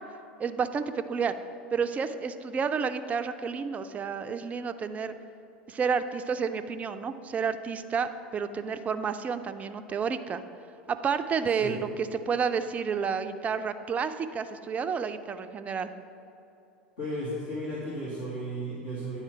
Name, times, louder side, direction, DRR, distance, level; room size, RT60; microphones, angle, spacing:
voice 1, 0.4-1.3 1.7-5.1 5.7-10.4 10.9-15.9, right 6 dB, 25° right, 10 dB, 0.4 m, -30 dB
voice 2, 17.0-19.2, equal, 65° left, -8 dB, 1.8 m, -34 dB
9.8 x 4.3 x 5.8 m, 2.9 s
figure-of-eight pair, 75°, 5 cm